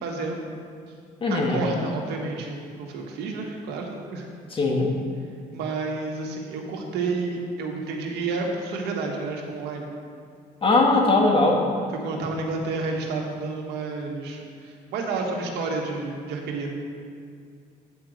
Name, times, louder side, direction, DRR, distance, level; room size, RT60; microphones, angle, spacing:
voice 1, 0.0-0.4 1.3-4.3 5.5-9.9 12.0-16.7, right 3 dB, 80° right, 1 dB, 1.5 m, -30 dB
voice 2, 1.2-1.6 4.5-4.9 10.6-11.7, left 2 dB, 30° left, 0 dB, 1.7 m, -20 dB
8.7 x 5.0 x 7.6 m, 2.2 s
cardioid pair, 110°, 17 cm